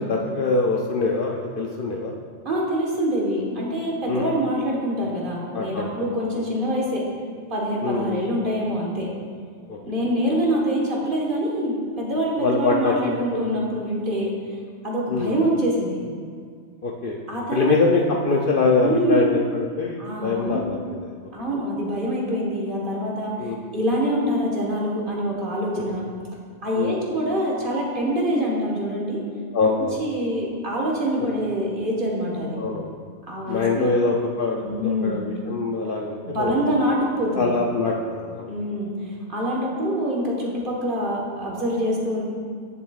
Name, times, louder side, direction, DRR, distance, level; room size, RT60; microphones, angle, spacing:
voice 1, 0.0-2.1 4.1-4.4 5.5-6.0 7.8-8.2 9.7-9.8 12.4-13.0 13.3-13.5 15.1-15.3 16.8-17.2 17.5-20.8 23.4-23.6 26.8-27.0 29.5-30.0 32.5-32.9 33.5-36.6 37.4-38.0 38.3-38.5, left 3 dB, 60° left, -1 dB, 0.6 m, -23 dB
voice 2, 2.4-7.0 7.5-9.1 9.8-14.3 14.8-16.0 17.3-17.8 18.8-19.2 20.0-20.6 21.3-26.0 26.6-29.2 29.6-29.7 30.0-32.6 33.3-33.9 34.6-35.2 36.2-37.5 38.5-42.2, equal, 45° right, -4 dB, 1.5 m, -25 dB
10.0 x 6.7 x 2.4 m, 2.1 s
omnidirectional pair, 1.3 m